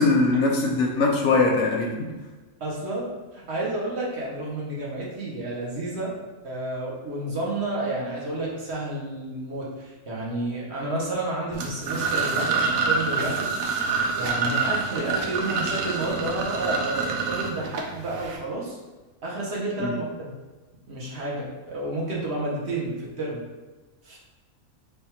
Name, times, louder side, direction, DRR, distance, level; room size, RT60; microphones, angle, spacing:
voice 1, 0.0-2.1 19.8-20.0, left 3 dB, 70° left, 1 dB, 0.8 m, -21 dB
voice 2, 2.6-6.1 6.4-13.8 14.1-18.8 19.2-20.3 20.9-23.4 24.0-24.2, right 2 dB, 55° right, -5 dB, 1.1 m, -30 dB
sound 1, 11.5-18.4, right 4 dB, 90° right, 1.0 m, -27 dB
3.4 x 2.3 x 4.2 m, 1.2 s
omnidirectional pair, 1.4 m